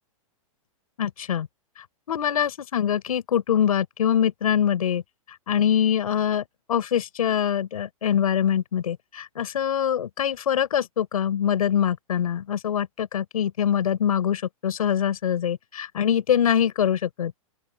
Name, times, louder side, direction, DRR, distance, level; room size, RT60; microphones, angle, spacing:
voice 1, 1.0-1.5 2.1-5.0 5.5-17.3, left 9 dB, 90° left, 6.2 m, -24 dB
open air
supercardioid pair, 160°, 18 cm